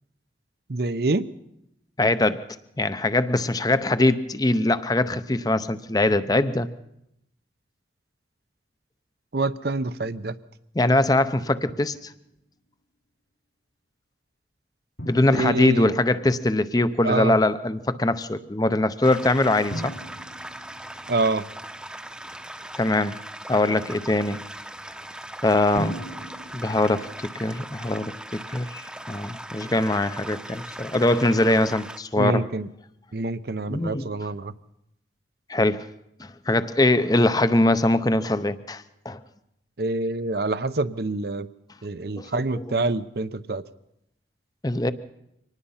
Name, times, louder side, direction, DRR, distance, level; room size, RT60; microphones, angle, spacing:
voice 1, 0.7-1.3 9.3-10.4 15.3-15.9 17.0-17.4 21.1-21.5 32.2-32.7 33.1-34.5 39.8-41.5 41.8-43.6, right 2 dB, 55° right, 14 dB, 0.7 m, -26 dB
voice 2, 2.0-2.4 2.8-6.7 10.7-12.1 15.0-19.9 22.8-23.2 23.5-24.4 25.4-26.0 26.5-32.5 33.7-34.1 35.5-35.9 36.2-39.2 42.2-42.8 44.6-44.9, left 2 dB, 20° left, 13 dB, 0.7 m, -22 dB
Drum, 11.7-12.4 15.0-16.8 19.7-22.2 25.7-28.9, right 1 dB, 65° left, 3.6 m, -40 dB
sound 1, 19.0-32.0, right 1 dB, 5° right, 0.9 m, -39 dB
24.5 x 19.0 x 5.7 m, 0.81 s
head